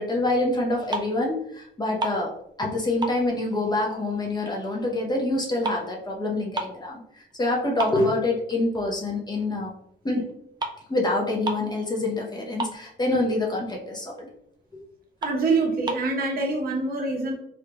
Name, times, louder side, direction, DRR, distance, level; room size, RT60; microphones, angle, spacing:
voice 1, 0.0-2.3 2.6-9.7 10.0-10.3 10.9-14.3 14.7-14.8, left 2 dB, 20° left, -1 dB, 0.7 m, -26 dB
sound 1, 0.9-1.3 1.6-2.7 3.0-4.5 4.8-6.9 7.3-7.4 7.8-8.9 9.3-9.5 10.3-10.4 10.6-10.8 11.1-11.2 11.4-11.8 12.1-12.2 12.4-13.2 13.7-13.8 14.2-14.3 14.7-14.8 15.2-16.1, right 2 dB, 20° right, 0.4 m, -33 dB
voice 2, 15.2-17.3, right 3 dB, 50° right, 0 dB, 0.8 m, -25 dB
3.0 x 2.5 x 2.2 m, 0.73 s
cardioid pair, 90°, 20 cm